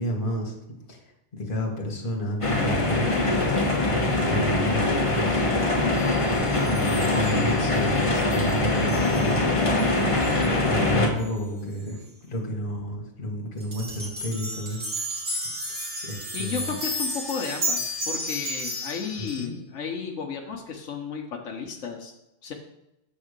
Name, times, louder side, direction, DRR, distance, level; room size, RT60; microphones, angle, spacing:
voice 1, 0.0-3.1 4.2-5.4 6.6-9.4 10.7-14.8 15.7-16.8 19.2-19.5, equal, 45° left, 0 dB, 1.7 m, -31 dB
sound 1, 2.4-11.1, left 2 dB, 30° left, 1.2 m, -23 dB
sound 2, 5.9-10.8 11.2-11.3 11.8-11.9 13.6-19.5, equal, 70° right, 2.5 m, -34 dB
voice 2, 16.3-22.1 22.4-22.5, left 6 dB, 85° left, 2 dB, 1.2 m, -33 dB
7.5 x 3.6 x 6.5 m, 0.88 s
omnidirectional pair, 1.2 m